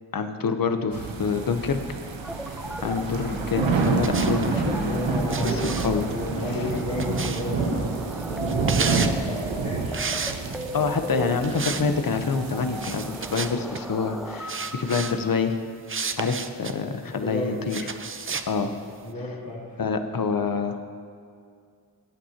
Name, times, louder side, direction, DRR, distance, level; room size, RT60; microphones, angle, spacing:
voice 1, 0.1-2.0 2.8-5.0 5.4-6.0 10.7-15.5 16.2-17.8 18.5-18.7 19.8-20.8, left 5 dB, 50° left, 8 dB, 0.9 m, -26 dB
sound 1, 0.9-13.5, right 4 dB, 85° right, 1.0 m, -29 dB
sound 2, 2.2-15.2, equal, ahead, 0.9 m, -37 dB
sound 3, 3.8-4.6 5.3-7.6 8.4-9.2 9.9-10.8 11.4-11.9 12.1-12.3 12.8-13.8 14.5-15.1 15.9-16.8 17.7-18.5, right 5 dB, 30° right, 0.6 m, -32 dB
voice 2, 4.8-7.9 8.4-10.0 17.0-17.6 19.0-19.8, left 2 dB, 65° left, -10 dB, 2.4 m, -32 dB
17.0 x 8.3 x 2.9 m, 2.3 s
cardioid pair, 40°, 45 cm